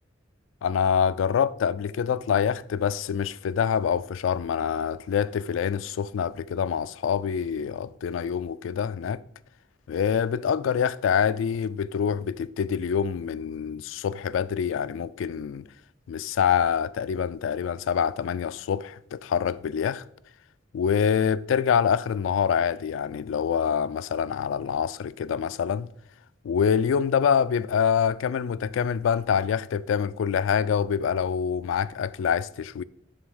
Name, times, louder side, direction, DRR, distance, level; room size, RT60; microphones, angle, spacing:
voice 1, 0.6-9.2 9.9-15.6 16.1-20.0 20.7-25.9 26.4-32.8, left 7 dB, 80° left, 0.3 m, -26 dB
7.6 x 3.4 x 6.3 m
head